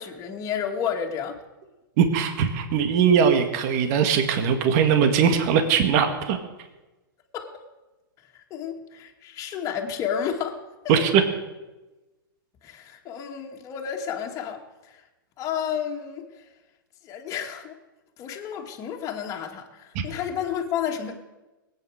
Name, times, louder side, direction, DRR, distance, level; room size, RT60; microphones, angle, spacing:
voice 1, 0.0-1.4 7.3-7.5 8.5-10.6 10.8-11.0 12.6-15.0 15.4-16.3 17.0-17.7 18.2-21.2, left 8 dB, 30° left, 1 dB, 2.2 m, -31 dB
voice 2, 2.0-6.4 10.9-11.2, right 7 dB, 45° right, 7 dB, 1.9 m, -20 dB
20.0 x 9.1 x 6.5 m, 1.1 s
hypercardioid pair, 130°, 12 cm